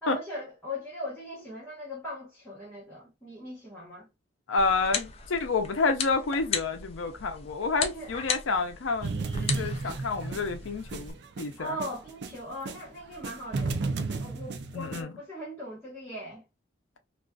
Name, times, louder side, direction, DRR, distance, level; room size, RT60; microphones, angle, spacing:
voice 1, 0.0-4.1 7.8-8.1 11.6-13.8 14.2-16.4, equal, 5° left, 1.0 m, -39 dB
voice 2, 4.5-11.8 14.7-15.1, left 4 dB, 85° left, 0.5 m, -29 dB
sound 1, 4.6-11.1, left 6 dB, 30° left, 0.3 m, -37 dB
sound 2, 9.0-12.8 13.1-15.0, right 3 dB, 55° right, 0.4 m, -33 dB
2.4 x 2.3 x 2.3 m
head